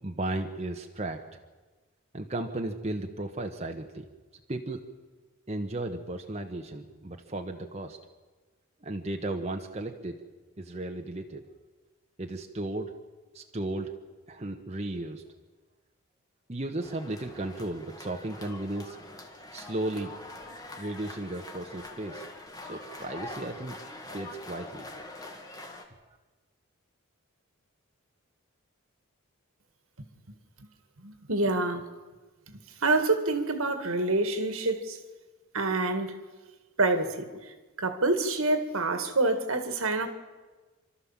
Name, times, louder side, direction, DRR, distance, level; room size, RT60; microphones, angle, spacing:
voice 1, 0.0-1.2 2.1-4.1 4.5-4.8 5.5-8.0 8.8-10.2 10.6-11.4 12.2-12.9 13.3-13.9 14.3-15.2 16.5-19.0 19.5-20.1 20.8-22.2 22.6-23.8 24.1-24.8, right 2 dB, 30° right, 3 dB, 1.1 m, -35 dB
sound 1, 16.8-25.8, left 2 dB, 15° left, 1.7 m, -44 dB
voice 2, 31.0-31.8 32.5-35.0 35.5-36.2 36.8-37.3 37.8-40.1, right 2 dB, 70° right, 8 dB, 1.9 m, -27 dB
27.5 x 13.0 x 7.4 m, 1.3 s
head